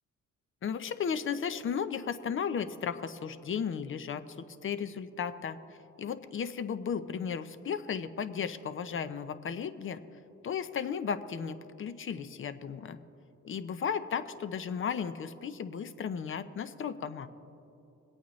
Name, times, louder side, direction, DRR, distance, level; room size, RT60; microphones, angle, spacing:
voice 1, 0.6-5.6 6.0-10.0 10.4-13.0 13.4-17.3, left 7 dB, 45° left, 11 dB, 0.6 m, -35 dB
22.0 x 8.8 x 3.1 m, 2.9 s
cardioid pair, 90°, 30 cm